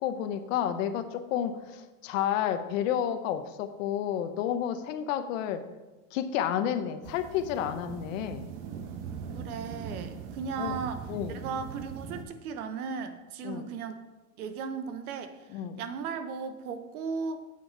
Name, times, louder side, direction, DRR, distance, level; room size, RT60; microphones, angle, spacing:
voice 1, 0.0-5.6 6.1-8.5 10.6-10.8 11.1-11.4 13.4-13.7 15.5-15.8, left 10 dB, 65° left, 9 dB, 0.9 m, -31 dB
sound 1, 7.0-12.2, right 6 dB, 45° right, 0.9 m, -41 dB
voice 2, 9.3-14.0 14.4-17.4, right 5 dB, 90° right, 9 dB, 1.1 m, -36 dB
8.5 x 6.3 x 4.6 m, 1.1 s
supercardioid pair, 145°, 42 cm